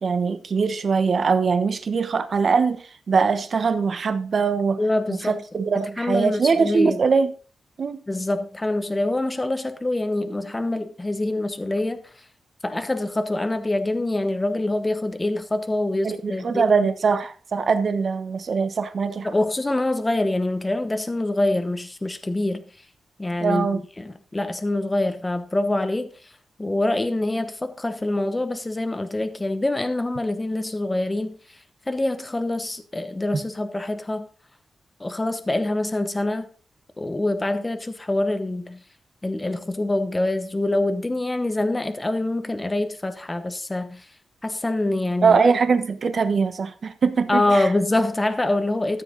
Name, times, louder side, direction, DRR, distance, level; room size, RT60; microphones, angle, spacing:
voice 1, 0.0-4.8 5.1-7.3 7.8-8.0 16.0-19.3 23.4-23.8 33.3-33.4 45.2-47.7, right 5 dB, 50° right, 1.1 m, -22 dB
voice 2, 4.8-5.4 6.0-7.0 8.1-12.3 12.6-16.6 19.2-22.6 23.2-26.3 26.6-31.6 31.9-34.3 35.0-36.5 37.0-38.8 39.2-44.1 44.4-45.4 47.3-49.0, left 2 dB, 15° left, 1.0 m, -25 dB
13.5 x 7.6 x 4.0 m
wide cardioid pair, 115°, 0 cm